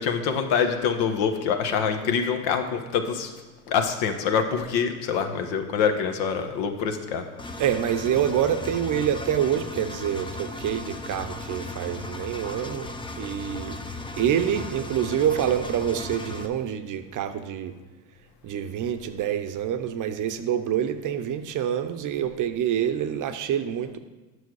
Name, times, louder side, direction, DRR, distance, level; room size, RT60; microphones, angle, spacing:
voice 1, 0.0-3.3 3.7-7.2, left 6 dB, 65° left, 7 dB, 1.3 m, -25 dB
Engine, 7.4-16.5, left 2 dB, 10° left, 0.6 m, -36 dB
voice 2, 7.6-13.8 14.2-17.7 18.4-24.0, right 9 dB, 40° right, 9 dB, 0.8 m, -26 dB
9.7 x 6.3 x 4.8 m, 1.2 s
supercardioid pair, 95°, 46 cm